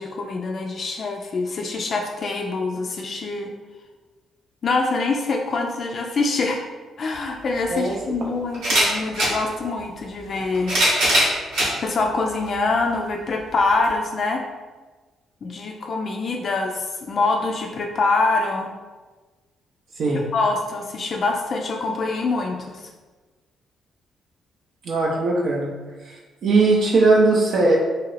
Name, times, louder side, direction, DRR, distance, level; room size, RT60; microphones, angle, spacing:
voice 1, 0.0-3.5 4.6-6.6 7.0-10.8 11.8-14.4 15.4-18.7 20.1-22.9, left 3 dB, 50° left, 1 dB, 0.3 m, -25 dB
sound 1, 7.1-7.2 8.5-9.3 10.3-11.7 12.5-12.6 13.8-13.9, right 1 dB, 90° right, 1.1 m, -20 dB
voice 2, 24.8-25.7 26.0-26.2 26.4-27.8, right 3 dB, 65° right, -3 dB, 0.4 m, -19 dB
2.7 x 2.4 x 3.2 m, 1.3 s
cardioid pair, 90°, 0 cm